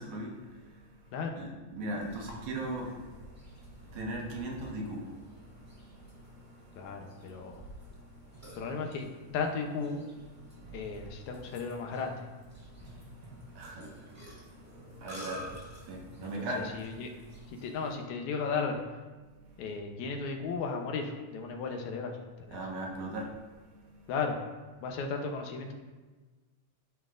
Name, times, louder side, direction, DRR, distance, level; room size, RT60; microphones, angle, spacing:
voice 1, 0.0-6.9 8.3-8.6 10.5-10.9 12.6-16.7 17.5-17.6 19.4-19.7 22.5-24.1, right 1 dB, 75° right, -1 dB, 2.4 m, -41 dB
Burping eructation, 2.0-17.9, equal, 5° right, 1.2 m, -50 dB
voice 2, 6.8-7.6 8.6-9.1 9.3-10.0 10.7-12.2 16.4-16.5 16.7-17.1 17.5-18.8 19.6-22.6 24.1-24.4 24.8-25.7, left 5 dB, 75° left, 3 dB, 2.1 m, -35 dB
13.0 x 5.8 x 2.5 m, 1.3 s
omnidirectional pair, 3.6 m